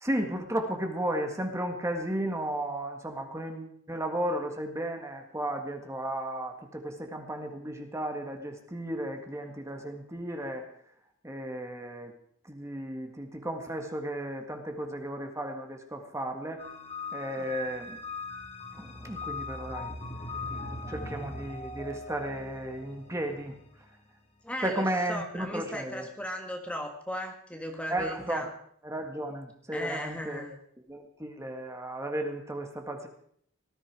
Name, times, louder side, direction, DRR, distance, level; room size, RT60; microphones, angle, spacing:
voice 1, 0.0-10.6 11.2-12.1 12.5-16.6 17.1-18.0 18.7-19.9 20.9-23.5 24.6-26.0 27.9-28.4 28.8-30.4 30.9-33.1, right 1 dB, 15° right, 4 dB, 1.7 m, -34 dB
sound 1, 16.6-23.9, left 2 dB, 30° left, 2.3 m, -40 dB
voice 2, 17.4-17.7 24.4-28.5 29.7-30.6, equal, 5° left, 3 dB, 1.6 m, -37 dB
19.0 x 14.0 x 4.8 m, 0.65 s
head